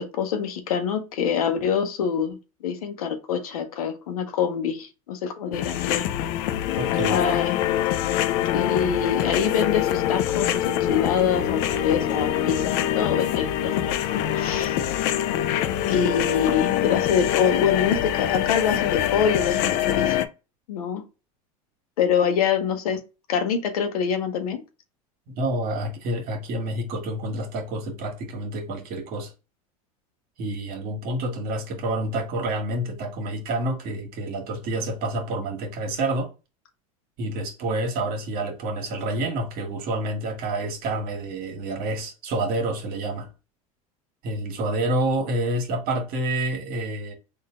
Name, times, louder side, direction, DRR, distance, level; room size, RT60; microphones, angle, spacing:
voice 1, 0.0-2.4 2.6-6.0 7.1-7.7 8.5-14.0 14.3-14.8 15.9-20.2 20.7-21.0 22.0-23.0 23.3-24.6, left 7 dB, 85° left, 1.0 m, -25 dB
sound 1, 5.5-20.3, left 11 dB, 60° left, 0.5 m, -24 dB
voice 2, 6.8-7.2 25.4-29.3 30.4-36.3 37.2-43.3 44.2-47.1, right 1 dB, 55° right, 1.4 m, -28 dB
3.8 x 2.7 x 3.6 m
hypercardioid pair, 100°, 18 cm